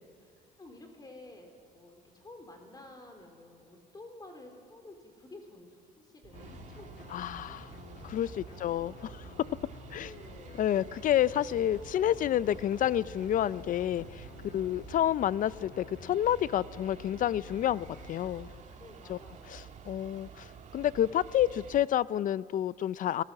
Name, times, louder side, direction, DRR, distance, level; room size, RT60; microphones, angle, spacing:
voice 1, 0.0-7.6 8.5-8.9 10.0-10.6 12.5-12.7 14.7-15.0 18.8-20.0, left 2 dB, 25° left, 3.6 m, -52 dB
sound 1, 6.2-21.8, right 7 dB, 45° right, 2.0 m, -49 dB
sound 2, 6.3-18.6, left 8 dB, 70° left, 1.7 m, -51 dB
voice 2, 7.1-7.7 8.0-9.3 9.9-10.1 10.6-14.2 14.5-18.5 19.1-19.2 19.5-20.5 20.7-23.2, left 11 dB, 50° left, 0.6 m, -29 dB
26.5 x 18.5 x 7.7 m
cardioid pair, 110°, 17 cm